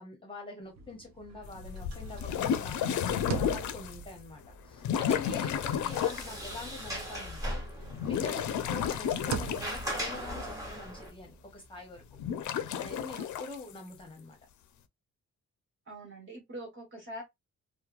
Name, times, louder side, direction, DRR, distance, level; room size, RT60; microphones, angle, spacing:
voice 1, 0.0-12.0 12.5-14.4, left 2 dB, 20° left, 0.7 m, -45 dB
sound 1, 0.7-7.1 7.5-12.9, right 5 dB, 65° right, 0.6 m, -44 dB
sound 2, 1.4-4.0 4.8-6.3 7.8-10.2 12.2-13.6, left 8 dB, 85° left, 0.4 m, -32 dB
Sliding door, 5.5-11.1, equal, 10° right, 0.9 m, -39 dB
voice 2, 15.9-17.2, right 1 dB, 45° right, 1.3 m, -43 dB
3.0 x 2.1 x 2.3 m
wide cardioid pair, 180°, 29 cm